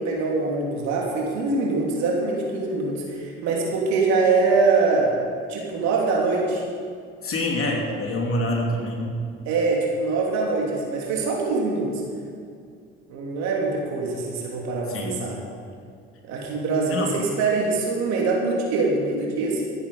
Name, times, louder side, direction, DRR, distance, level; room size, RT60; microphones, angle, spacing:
voice 1, 0.0-5.1 5.5-6.6 9.5-11.9 13.1-15.4 16.3-19.7, right 3 dB, 65° right, -1 dB, 3.0 m, -23 dB
voice 2, 7.2-9.2 14.9-15.3 16.9-17.1, left 1 dB, 45° left, 0 dB, 3.0 m, -26 dB
13.5 x 10.5 x 5.5 m, 2.2 s
hypercardioid pair, 55°, 30 cm